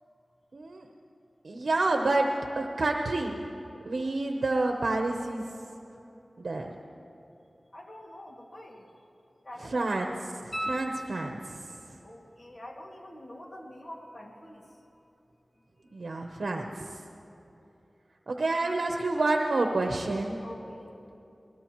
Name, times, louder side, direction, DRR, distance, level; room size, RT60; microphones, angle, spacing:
voice 1, 0.5-0.8 1.4-2.3 2.5-3.4 3.9-5.4 6.4-6.7 9.7-10.1 10.7-11.4 15.9-16.9 18.3-20.4, right 2 dB, 80° right, 3 dB, 0.8 m, -28 dB
voice 2, 7.7-8.9 9.4-10.3 12.0-14.9 20.4-20.9, left 1 dB, 50° left, -1 dB, 2.2 m, -46 dB
sound 1, 10.5-11.9 14.6-14.7, right 1 dB, 10° left, 1.9 m, -37 dB
20.5 x 19.5 x 3.1 m, 2.8 s
wide cardioid pair, 65°, 0 cm